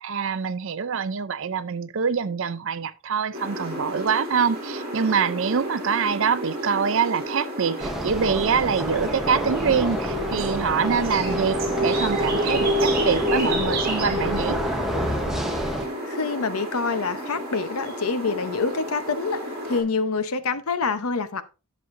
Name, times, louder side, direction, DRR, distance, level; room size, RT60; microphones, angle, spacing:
voice 1, 0.0-14.6, right 6 dB, 60° right, 0.5 m, -25 dB
sound 1, 3.3-19.8, equal, 40° right, 2.7 m, -29 dB
sound 2, 7.8-15.9, equal, ahead, 0.9 m, -29 dB
voice 2, 16.0-19.4 19.6-21.4, left 4 dB, 75° left, 0.8 m, -26 dB
10.5 x 7.1 x 2.6 m
head